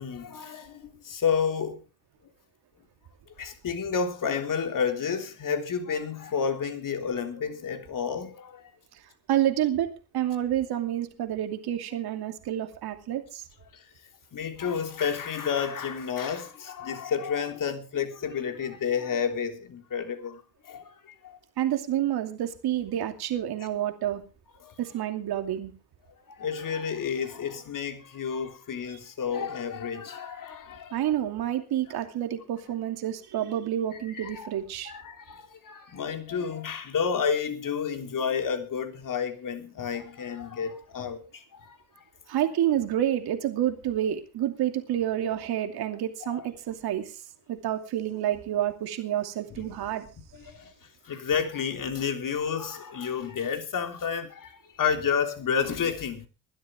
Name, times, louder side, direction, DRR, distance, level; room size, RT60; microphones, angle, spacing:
voice 1, 0.0-1.8 3.4-8.7 13.7-13.8 14.3-21.4 24.6-24.8 26.3-31.0 34.1-34.5 34.9-42.0 46.2-46.4 49.5-49.7 50.3-50.7 51.0-56.3, left 6 dB, 50° left, 3.4 m, -31 dB
voice 2, 9.3-13.4 21.6-24.2 24.8-25.7 30.9-34.9 42.3-47.2 47.5-50.1, right 11 dB, 65° right, 2.7 m, -29 dB
21.5 x 12.0 x 3.6 m
hypercardioid pair, 60°, 41 cm